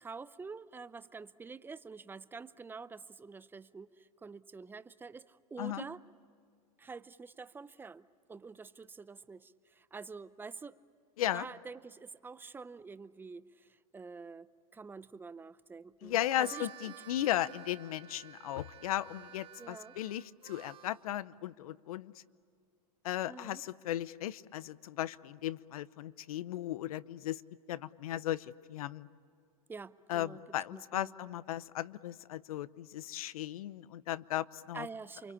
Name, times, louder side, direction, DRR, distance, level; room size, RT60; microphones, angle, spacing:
voice 1, 0.0-6.0 6.8-10.8 11.3-17.0 19.6-19.9 23.3-23.6 29.7-30.4 30.7-31.1 34.7-35.3, right 4 dB, 10° right, 15 dB, 0.7 m, -47 dB
voice 2, 16.0-22.1 23.0-27.4 27.7-29.1 30.1-34.9, left 13 dB, 75° left, 18 dB, 0.8 m, -36 dB
Harmonica, 16.1-21.1, right 10 dB, 30° right, 1.2 m, -52 dB
29.0 x 24.0 x 8.6 m, 2.3 s
hypercardioid pair, 115°, 19 cm